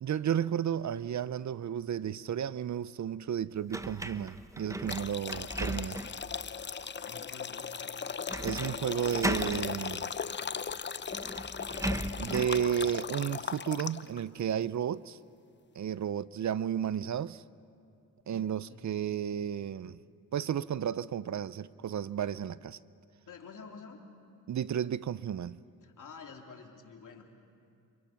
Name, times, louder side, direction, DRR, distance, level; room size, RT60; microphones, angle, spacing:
voice 1, 0.0-6.0 8.4-10.1 12.2-15.2 15.8-17.4 18.3-20.0 20.3-22.8 24.5-25.6, right 9 dB, 55° right, 0.6 m, -33 dB
sound 1, 3.7-6.3 6.8-6.9 8.3-8.8 9.0-9.7 10.7-10.8 11.1-12.6, right 1 dB, 10° right, 1.0 m, -36 dB
sound 2, 4.9-14.2, left 6 dB, 35° left, 0.6 m, -38 dB
voice 2, 7.0-7.8 18.7-19.0 23.3-24.0 25.8-27.3, left 5 dB, 65° left, 3.1 m, -49 dB
28.5 x 26.0 x 5.9 m
cardioid pair, 60°, 34 cm